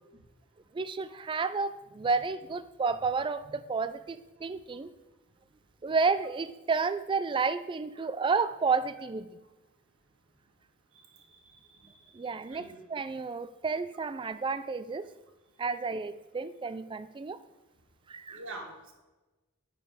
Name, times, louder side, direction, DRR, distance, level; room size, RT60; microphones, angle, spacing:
voice 1, 0.7-4.9 5.8-9.3 12.1-15.1 15.6-17.4 18.1-18.4, right 4 dB, 25° right, 14 dB, 0.3 m, -31 dB
voice 2, 11.1-11.9 12.3-12.8 18.3-18.7, right 2 dB, 65° right, 2 dB, 1.5 m, -46 dB
9.5 x 5.1 x 4.8 m, 1.1 s
head